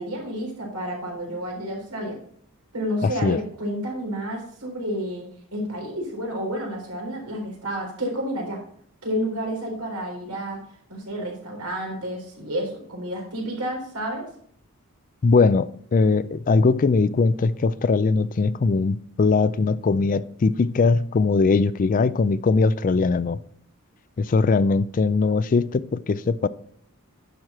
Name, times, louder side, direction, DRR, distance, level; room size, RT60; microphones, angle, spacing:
voice 1, 0.0-2.2 2.7-8.6 9.0-10.6 10.9-14.3, equal, 90° right, 4.0 m, -30 dB
voice 2, 3.0-3.4 15.2-23.4 24.2-26.5, left 4 dB, 35° left, 0.3 m, -20 dB
10.5 x 6.3 x 4.3 m
head